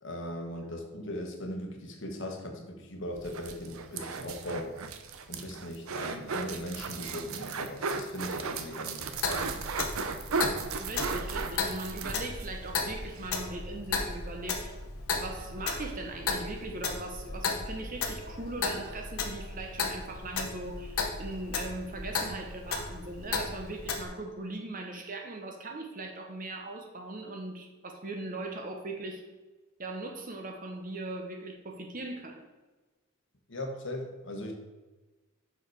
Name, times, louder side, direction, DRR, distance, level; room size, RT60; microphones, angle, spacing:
voice 1, 0.0-4.8 5.3-9.6 33.5-34.5, left 1 dB, 60° left, 3 dB, 1.1 m, -39 dB
sound 1, 3.2-12.5 12.8-12.9 13.2-13.3, right 4 dB, 80° right, 0.6 m, -35 dB
Clock, 9.1-24.1, left 4 dB, 85° left, 1.0 m, -35 dB
voice 2, 10.8-14.7 15.1-29.2 29.8-32.4, right 2 dB, 40° right, 3 dB, 0.9 m, -39 dB
6.1 x 5.0 x 4.6 m, 1.2 s
head